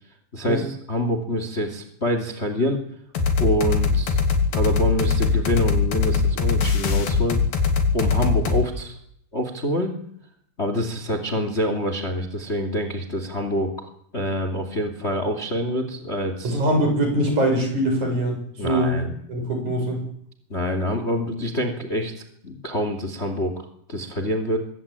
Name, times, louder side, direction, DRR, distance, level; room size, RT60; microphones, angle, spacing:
voice 1, 0.3-2.8 3.4-4.2 4.5-7.4 7.9-9.0 9.3-10.0 10.6-13.9 14.1-16.6 18.6-19.1 20.5-22.1 22.4-24.6, equal, 20° left, 8 dB, 2.4 m, -26 dB
sound 1, 3.2-8.7, left 4 dB, 80° left, 4.7 m, -21 dB
voice 2, 16.4-19.0 19.3-20.0, right 1 dB, 50° right, 4 dB, 8.4 m, -22 dB
25.5 x 22.0 x 8.9 m, 0.69 s
omnidirectional pair, 4.2 m